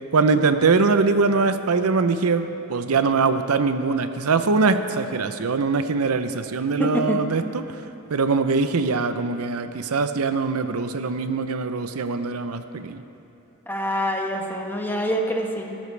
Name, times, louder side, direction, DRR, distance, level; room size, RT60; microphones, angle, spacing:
voice 1, 0.1-7.8 8.1-13.0, right 4 dB, 90° right, 10 dB, 0.7 m, -22 dB
voice 2, 6.8-7.3 13.7-15.8, equal, 10° left, 2 dB, 1.1 m, -25 dB
18.5 x 12.0 x 3.3 m, 2.8 s
head